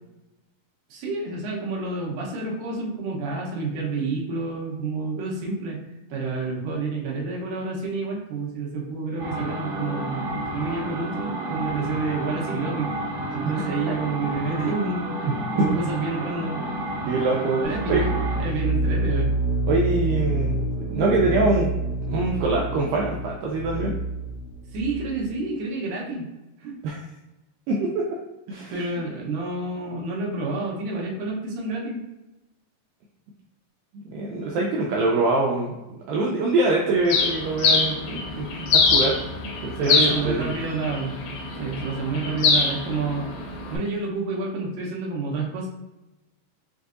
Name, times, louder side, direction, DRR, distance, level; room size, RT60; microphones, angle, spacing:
voice 1, 0.9-5.8 6.1-12.9 13.3-15.1 15.5-16.6 17.6-18.1 18.4-19.4 24.7-26.3 26.6-26.8 28.7-32.1 38.5-38.8 39.8-41.1 41.6-43.3 43.7-45.7, right 3 dB, 75° right, -3 dB, 2.3 m, -29 dB
sound 1, 9.2-18.4, right 1 dB, 55° right, 1.9 m, -31 dB
voice 2, 17.1-17.6 17.9-18.0 19.7-21.7 22.1-24.0 26.8-27.0 27.7-28.1 28.5-28.7 34.1-39.2 39.6-40.5, right 2 dB, 90° right, -2 dB, 2.0 m, -24 dB
sound 2, 17.6-25.3, right 2 dB, 60° left, 1.0 m, -27 dB
Bird, 37.1-43.8, left 4 dB, 85° left, 2.9 m, -24 dB
6.4 x 2.5 x 2.4 m, 1.0 s
omnidirectional pair, 4.6 m